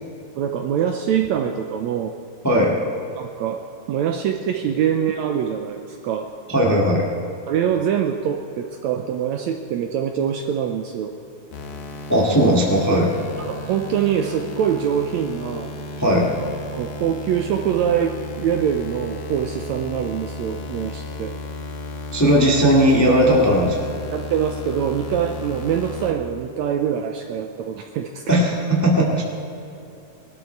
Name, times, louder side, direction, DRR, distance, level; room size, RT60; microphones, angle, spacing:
voice 1, 0.4-2.1 3.2-3.6 3.9-6.3 7.5-11.1 13.4-15.7 16.7-21.3 24.1-28.2, right 8 dB, 75° right, 5 dB, 1.7 m, -24 dB
voice 2, 2.4-2.8 6.5-7.1 12.1-13.1 16.0-16.3 22.1-23.8 28.3-29.2, equal, 10° left, -2 dB, 1.0 m, -17 dB
sound 1, 11.5-26.1, left 2 dB, 70° left, 2.7 m, -34 dB
20.5 x 12.5 x 4.5 m, 2.7 s
omnidirectional pair, 3.8 m